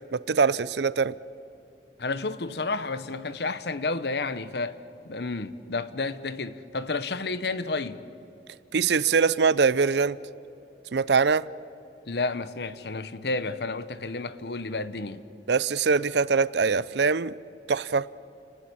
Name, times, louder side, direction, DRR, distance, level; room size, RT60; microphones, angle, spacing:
voice 1, 0.1-1.2 8.7-10.2 10.9-11.5 15.5-17.3 17.7-18.1, right 5 dB, 70° right, 0.5 m, -23 dB
voice 2, 2.0-4.8 5.0-8.0 12.1-15.2, left 3 dB, 65° left, 1.0 m, -31 dB
29.5 x 19.0 x 8.6 m
head